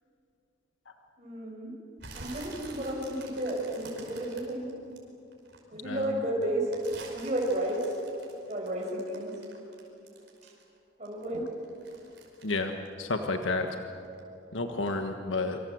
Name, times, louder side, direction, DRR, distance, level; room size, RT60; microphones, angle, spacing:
voice 1, 1.2-1.7 2.1-4.7 5.7-8.0 8.5-9.3 10.4-10.5 11.0-11.5, right 1 dB, 35° right, -2 dB, 5.8 m, -32 dB
sound 1, 2.0-5.6 6.0-10.8 11.0-13.8 14.0-14.4 14.9-15.0, right 3 dB, 60° right, 5.4 m, -48 dB
voice 2, 12.4-13.7 14.5-15.6, left 3 dB, 85° left, 5 dB, 1.5 m, -31 dB
27.0 x 26.0 x 7.9 m, 2.6 s
head